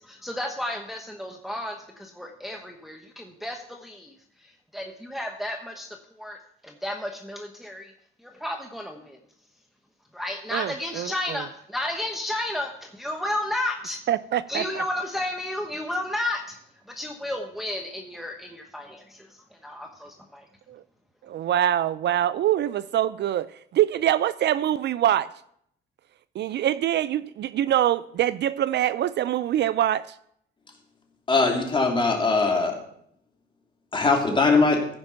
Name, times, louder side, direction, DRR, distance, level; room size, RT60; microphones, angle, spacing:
voice 1, 0.0-4.1 4.4-6.4 6.6-7.9 8.2-9.2 10.1-14.0 14.5-16.6 16.9-20.4, left 1 dB, ahead, 1.1 m, -32 dB
voice 2, 10.5-11.1 14.1-14.8 20.7-20.8 21.3-23.5 23.7-25.3 26.4-30.0, right 11 dB, 60° right, 0.4 m, -24 dB
voice 3, 31.3-32.8 33.9-34.8, left 3 dB, 25° left, 2.8 m, -21 dB
15.0 x 5.3 x 5.8 m
cardioid pair, 90°, 20 cm